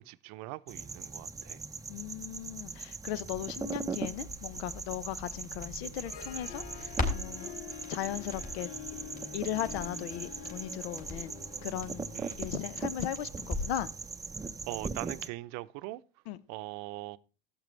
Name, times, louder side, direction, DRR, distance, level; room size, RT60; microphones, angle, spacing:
voice 1, 0.0-1.6 12.1-12.4 14.7-16.0 16.5-17.2, right 19 dB, 60° right, 0.7 m, -41 dB
sound 1, 0.7-15.3, right 4 dB, 10° right, 0.6 m, -40 dB
voice 2, 1.9-7.5 7.9-8.7 9.3-13.9 16.3-16.4, left 12 dB, 80° left, 0.9 m, -37 dB
Crackle, 4.1-13.9 14.2-14.3, left 2 dB, 25° left, 3.5 m, -41 dB
Harp, 5.8-12.9, left 10 dB, 45° left, 0.9 m, -47 dB
13.5 x 8.6 x 3.2 m
hypercardioid pair, 95°, 32 cm